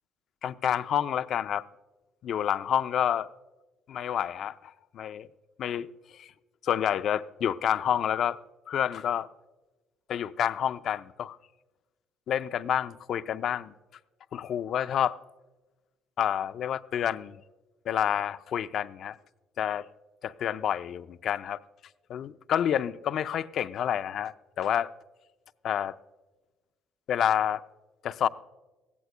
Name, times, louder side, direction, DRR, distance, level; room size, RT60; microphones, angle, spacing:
voice 1, 0.4-1.6 2.2-3.3 3.9-5.3 5.6-5.9 6.1-6.3 6.6-8.4 8.7-9.3 10.1-11.4 12.3-13.7 14.3-15.2 16.2-17.4 17.9-19.2 19.6-19.9 20.2-21.6 22.1-24.9 25.6-26.0 27.1-27.6 28.0-28.3, left 9 dB, 55° left, 13 dB, 0.5 m, -28 dB
20.5 x 15.5 x 2.2 m, 1.2 s
cardioid pair, 110°, 0 cm